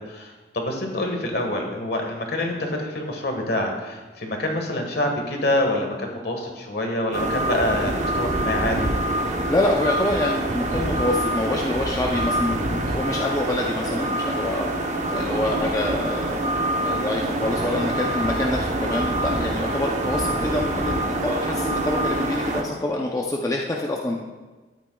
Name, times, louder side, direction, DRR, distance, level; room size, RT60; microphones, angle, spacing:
voice 1, 0.0-8.9, left 1 dB, 60° left, 2 dB, 1.5 m, -26 dB
sound 1, 7.1-22.6, right 1 dB, 40° right, 0.8 m, -25 dB
voice 2, 9.5-14.7 15.1-16.4 16.8-24.2, left 1 dB, 20° left, -1 dB, 0.5 m, -26 dB
12.5 x 9.0 x 2.3 m, 1.3 s
head